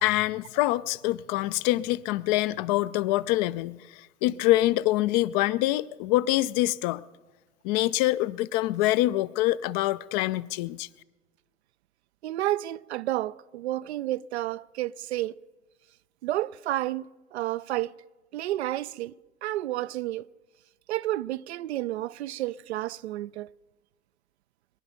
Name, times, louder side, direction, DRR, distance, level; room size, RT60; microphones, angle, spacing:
voice 1, 0.0-7.0 7.6-10.9, left 16 dB, 40° left, 0.4 m, -25 dB
voice 2, 12.2-15.3 16.2-17.1 17.3-17.9 18.3-19.1 19.4-20.3 20.9-23.5, right 15 dB, 65° right, 0.5 m, -30 dB
23.0 x 11.5 x 5.3 m
figure-of-eight pair, 85°, 37 cm